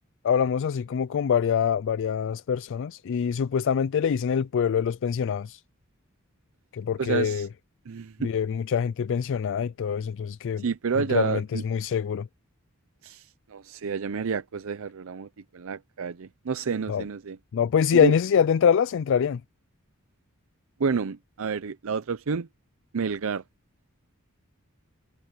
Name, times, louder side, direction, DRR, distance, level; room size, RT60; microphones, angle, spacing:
voice 1, 0.2-5.6 6.7-7.5 8.2-10.6 11.1-12.3 16.9-17.0 17.5-19.4, left 7 dB, 60° left, 0.3 m, -24 dB
voice 2, 7.0-7.5 7.9-8.3 10.6-11.6 13.0-15.3 15.5-17.4 17.9-18.1 20.8-22.5 22.9-23.4, right 5 dB, 70° right, 0.5 m, -29 dB
head